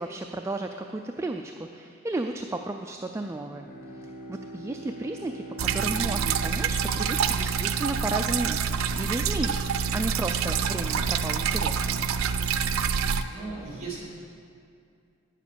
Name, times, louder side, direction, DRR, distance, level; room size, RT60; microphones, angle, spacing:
voice 1, 0.0-3.7 3.9-9.7 9.9-12.1, right 2 dB, 15° right, 4 dB, 0.3 m, -33 dB
Bowed string instrument, 3.1-7.8, right 1 dB, 45° left, 0.8 m, -43 dB
sound 1, 5.6-13.2, right 6 dB, 85° right, 0.5 m, -26 dB
voice 2, 13.3-14.0, right 4 dB, 30° right, -4 dB, 3.0 m, -36 dB
9.9 x 7.4 x 6.8 m, 2.4 s
head